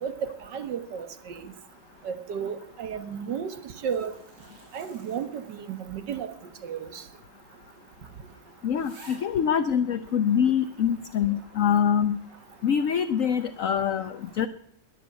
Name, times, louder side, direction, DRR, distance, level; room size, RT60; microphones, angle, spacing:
voice 1, 0.0-1.5 2.0-4.1 4.7-6.3 6.6-7.0, right 7 dB, 70° right, 1.8 m, -33 dB
sound 1, 3.5-6.0 6.3-6.4 7.2-7.3 7.7-7.8 8.3-8.4 8.7-9.4 10.1-10.2, right 1 dB, 50° right, 6.3 m, -52 dB
voice 2, 8.6-12.2 12.6-14.5, left 8 dB, 60° left, 1.0 m, -24 dB
21.5 x 7.9 x 8.2 m
omnidirectional pair, 2.0 m